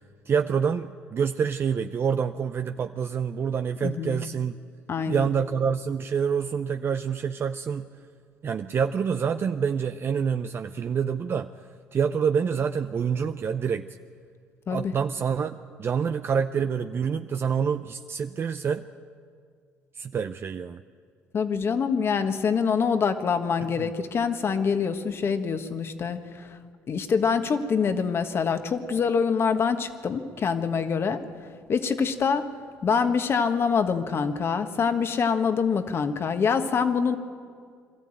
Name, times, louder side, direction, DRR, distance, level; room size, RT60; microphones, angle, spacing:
voice 1, 0.3-4.5 5.1-7.9 8.4-11.5 11.9-13.9 14.7-18.9 20.0-20.8 23.6-23.9, right 6 dB, 45° right, 8 dB, 0.6 m, -27 dB
voice 2, 3.8-4.2 4.9-5.3 14.7-14.9 21.3-26.5 26.9-31.2 31.7-32.5 32.8-37.2, left 6 dB, 45° left, 8 dB, 1.5 m, -25 dB
22.5 x 13.5 x 9.0 m, 2.1 s
supercardioid pair, 70°, 6 cm